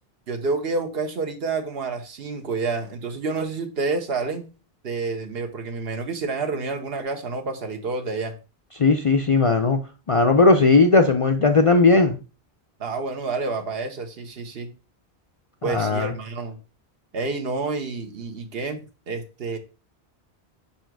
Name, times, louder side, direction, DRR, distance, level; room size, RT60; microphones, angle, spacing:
voice 1, 0.3-4.4 4.8-8.3 12.8-14.7 15.6-16.6 17.1-18.8 19.1-19.6, right 3 dB, 70° right, 1.2 m, -28 dB
voice 2, 8.8-9.8 10.1-12.2 15.6-16.1, left 3 dB, 45° left, 0.4 m, -17 dB
5.0 x 4.4 x 4.5 m
omnidirectional pair, 1.1 m